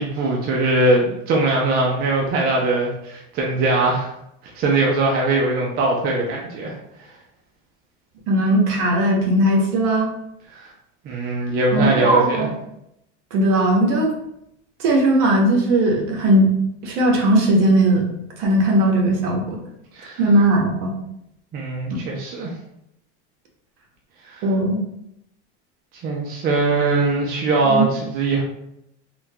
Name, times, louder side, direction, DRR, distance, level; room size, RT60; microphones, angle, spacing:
voice 1, 0.0-4.1 4.5-6.8 10.5-10.7 11.1-12.5 19.9-20.2 21.5-22.5 24.2-24.4 25.9-28.4, right 2 dB, 30° right, -2 dB, 0.4 m, -21 dB
voice 2, 8.3-10.1 11.7-12.5 13.3-14.1 14.8-16.5 16.8-18.1 18.4-19.6 20.2-20.9 24.4-24.8 27.6-27.9, right 1 dB, 55° right, 0 dB, 0.9 m, -18 dB
3.6 x 2.2 x 2.7 m, 0.79 s
supercardioid pair, 135°, 35 cm